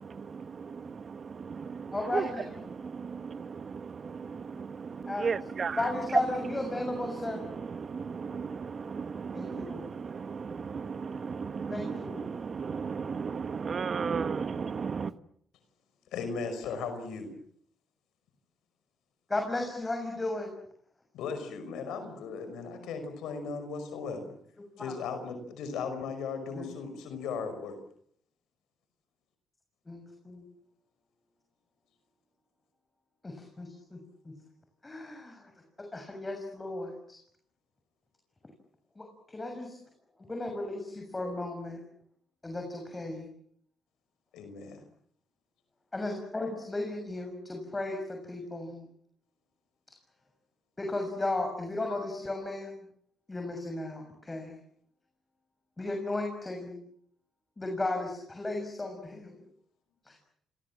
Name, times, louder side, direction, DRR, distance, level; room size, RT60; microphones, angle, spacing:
voice 1, 1.9-2.6 5.1-5.4 5.8-7.4 9.3-9.9 11.7-12.3 19.3-20.5 24.8-24.9 26.5-26.7 29.9-30.5 33.2-34.3 34.8-35.5 35.8-37.2 39.0-39.8 40.3-41.8 42.4-43.3 45.9-48.8 50.8-52.8 53.3-54.6 55.8-56.8 57.6-59.4 60.0-60.2, left 2 dB, 20° left, 6.8 m, -35 dB
voice 2, 5.2-5.8 8.3-8.4 9.5-9.6 11.5-11.7 12.6-15.1, right 5 dB, 45° right, 1.3 m, -32 dB
voice 3, 16.1-17.3 21.1-24.4 24.8-27.8 44.3-44.8, left 5 dB, 85° left, 5.5 m, -37 dB
29.0 x 25.5 x 7.5 m
cardioid pair, 90°, 0 cm